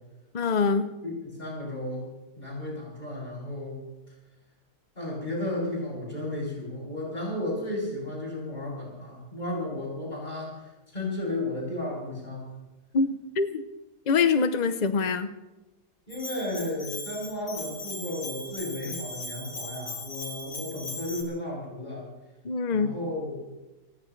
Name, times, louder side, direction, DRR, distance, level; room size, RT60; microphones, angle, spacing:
voice 1, 0.3-0.9 12.9-13.6 14.1-15.3 22.4-22.9, left 5 dB, 60° left, 10 dB, 0.4 m, -24 dB
voice 2, 1.0-2.1 2.4-3.8 4.9-12.5 16.1-22.1 22.7-23.4, left 1 dB, 25° left, -5 dB, 7.9 m, -34 dB
Bell, 16.1-21.2, left 2 dB, 75° left, 3.3 m, -39 dB
28.5 x 15.5 x 3.2 m, 1.1 s
omnidirectional pair, 1.8 m